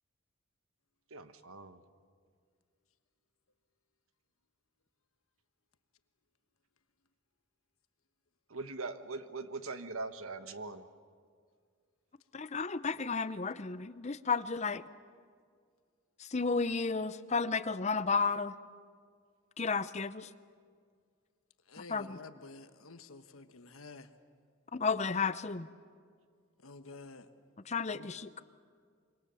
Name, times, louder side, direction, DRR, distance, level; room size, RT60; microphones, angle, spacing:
voice 1, 1.1-1.8 8.5-10.9, right 3 dB, 85° right, 10 dB, 1.3 m, -41 dB
voice 2, 12.3-14.8 16.2-18.5 19.6-20.3 21.9-22.2 24.7-25.7 27.7-28.4, left 4 dB, 35° left, 14 dB, 0.6 m, -32 dB
voice 3, 21.7-24.1 26.6-27.3 27.9-28.1, left 3 dB, 85° left, 9 dB, 1.3 m, -50 dB
26.0 x 24.0 x 7.0 m, 2.1 s
head